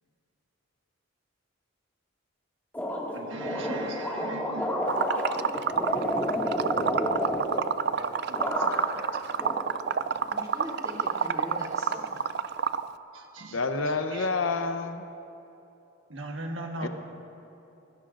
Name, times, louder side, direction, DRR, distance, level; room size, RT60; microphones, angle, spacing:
sound 1, 2.7-8.0 8.3-9.1 9.4-10.3, equal, 10° left, 1.9 m, -31 dB
voice 1, 3.1-4.8 8.0-8.4 8.9-9.0 13.1-13.6 13.9-14.3 16.1-16.9, right 1 dB, 70° right, 2 dB, 1.5 m, -39 dB
Liquid, 4.9-12.9, right 7 dB, 55° right, 0.4 m, -28 dB
voice 2, 10.3-12.2, equal, 20° right, -5 dB, 2.9 m, -41 dB
voice 3, 13.5-15.0 16.8-16.9, left 3 dB, 75° left, 7 dB, 0.8 m, -28 dB
25.5 x 18.0 x 2.5 m, 2.9 s
head